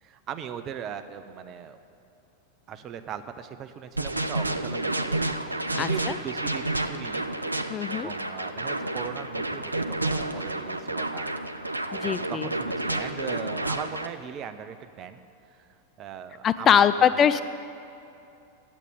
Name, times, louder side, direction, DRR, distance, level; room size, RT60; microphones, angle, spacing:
voice 1, 0.0-1.8 2.7-5.2 5.7-7.2 7.9-11.3 11.6-15.2 15.5-17.4, right 8 dB, 30° right, 9 dB, 0.7 m, -39 dB
sound 1, 4.0-14.1, right 2 dB, 85° right, 0.5 m, -30 dB
voice 2, 7.7-8.1 12.0-12.5 16.4-17.4, left 8 dB, 25° left, 13 dB, 0.3 m, -21 dB
8.3 x 8.2 x 9.0 m, 2.7 s
figure-of-eight pair, 90°, 0 cm